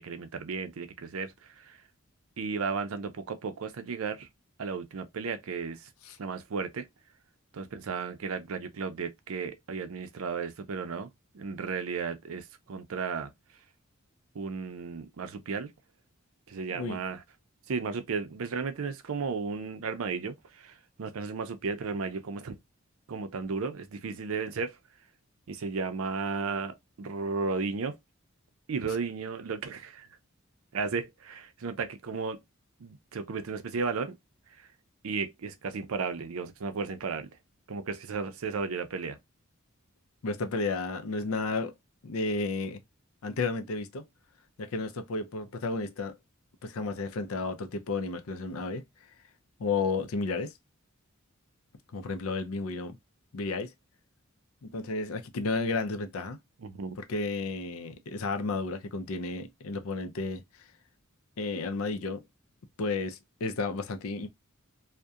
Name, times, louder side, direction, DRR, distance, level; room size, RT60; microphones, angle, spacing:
voice 1, 0.0-1.8 2.4-4.3 4.6-5.9 6.2-6.9 7.5-11.1 11.3-13.3 14.3-15.7 16.5-17.2 17.7-22.6 23.1-24.8 25.5-28.0 28.7-30.1 30.7-32.4 32.8-34.2 34.6-34.7 35.0-37.3 37.7-39.2 56.6-57.0, right 5 dB, 80° right, 0.5 m, -34 dB
voice 2, 40.2-41.7 42.0-42.8 43.2-44.0 44.6-46.2 46.6-48.8 49.6-50.5 51.9-53.0 53.3-53.7 54.6-56.4 57.0-60.4 61.4-62.2 62.8-64.3, left 3 dB, 80° left, 0.5 m, -32 dB
2.7 x 2.1 x 2.3 m
head